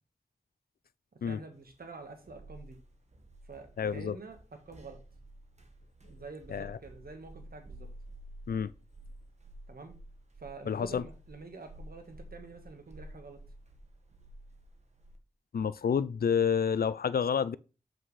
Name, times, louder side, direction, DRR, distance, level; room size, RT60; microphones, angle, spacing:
voice 1, 1.3-2.8 3.4-5.0 6.1-7.9 9.7-10.0 10.4-13.4, right 3 dB, 85° right, 1.5 m, -47 dB
sound 1, 1.7-15.2, right 1 dB, 50° right, 1.4 m, -51 dB
voice 2, 3.8-4.2 6.5-6.8 8.5-8.7 10.7-11.0 15.5-17.6, left 7 dB, 85° left, 0.4 m, -29 dB
7.3 x 5.8 x 3.2 m
wide cardioid pair, 55°, 15 cm